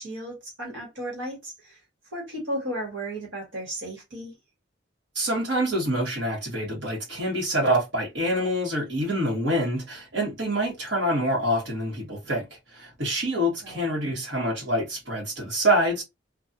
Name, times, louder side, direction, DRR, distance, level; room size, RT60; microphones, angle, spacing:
voice 1, 0.0-1.8 2.1-4.3 13.6-13.9, right 1 dB, 80° right, 1.6 m, -34 dB
voice 2, 5.1-12.5 12.7-16.0, equal, 65° right, 1.6 m, -26 dB
3.3 x 2.4 x 2.7 m
head